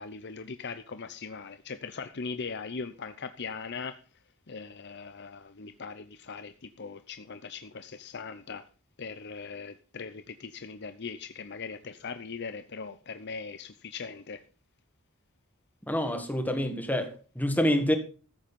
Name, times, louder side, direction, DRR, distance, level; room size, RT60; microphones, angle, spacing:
voice 1, 0.0-4.0 4.5-8.6 9.0-14.4, left 5 dB, 50° left, 0.8 m, -40 dB
voice 2, 15.8-18.0, equal, 10° left, 1.8 m, -27 dB
14.5 x 7.9 x 5.4 m
head